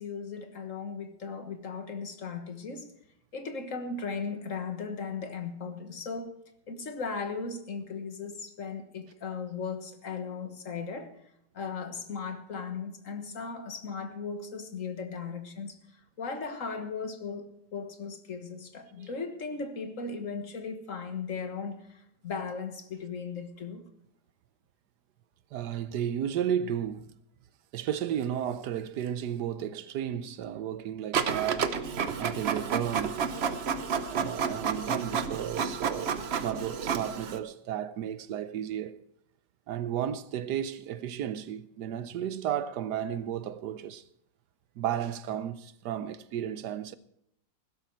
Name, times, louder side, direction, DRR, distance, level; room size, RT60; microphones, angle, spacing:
voice 1, 0.0-2.9 3.3-6.4 6.7-11.1 11.5-15.8 16.2-21.8 22.2-23.9, left 5 dB, 50° left, 1.6 m, -37 dB
voice 2, 25.5-27.1 27.7-31.7 32.2-33.2 34.1-36.2 36.4-39.0 39.7-44.0 44.8-46.9, right 10 dB, 70° right, 1.3 m, -33 dB
Printer, 31.1-37.4, right 6 dB, 50° right, 0.8 m, -30 dB
16.0 x 12.5 x 4.5 m
omnidirectional pair, 1.9 m